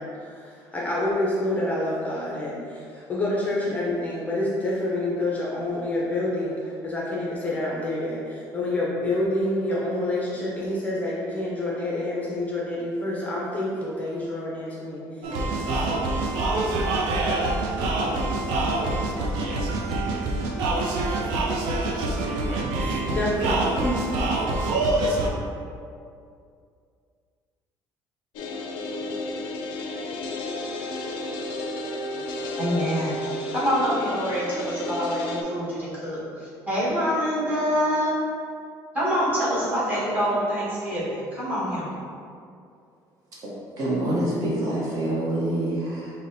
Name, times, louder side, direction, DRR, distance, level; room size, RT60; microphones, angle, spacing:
voice 1, 0.0-15.0 15.7-15.9 22.8-24.0, left 1 dB, 20° left, -6 dB, 0.5 m, -28 dB
sound 1, 15.2-25.3, right 2 dB, 85° right, 0.5 m, -25 dB
sound 2, 28.4-35.4, left 2 dB, 85° left, 0.4 m, -32 dB
voice 2, 32.6-33.1 33.5-38.2 38.9-41.9, equal, 20° right, -10 dB, 1.2 m, -26 dB
voice 3, 43.8-46.1, right 1 dB, 45° right, -6 dB, 0.8 m, -26 dB
5.7 x 2.1 x 2.6 m, 2.4 s
cardioid pair, 165°, 8 cm